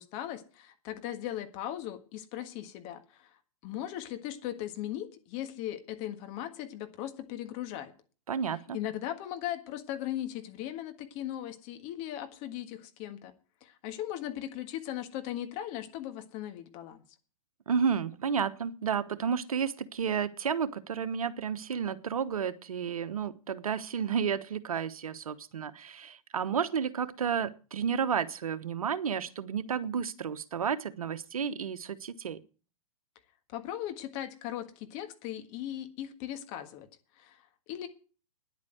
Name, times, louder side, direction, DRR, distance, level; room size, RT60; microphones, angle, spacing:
voice 1, 0.0-3.3 3.6-7.9 8.7-13.3 13.6-17.0 33.5-36.9 37.2-37.9, left 12 dB, 40° left, 1.6 m, -38 dB
voice 2, 8.3-8.8 17.7-32.4, right 7 dB, 70° right, 1.1 m, -31 dB
10.5 x 8.6 x 7.8 m
figure-of-eight pair, 110°, 19 cm